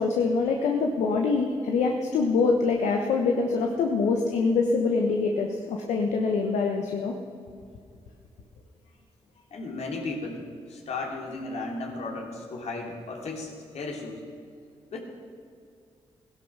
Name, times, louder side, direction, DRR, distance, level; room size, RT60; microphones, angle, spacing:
voice 1, 0.0-7.2, left 4 dB, 85° left, 2 dB, 1.1 m, -24 dB
voice 2, 9.5-10.4 10.7-14.2 14.9-15.0, left 3 dB, 70° left, 1 dB, 2.9 m, -35 dB
16.5 x 11.0 x 6.1 m, 2.3 s
supercardioid pair, 55°, 12 cm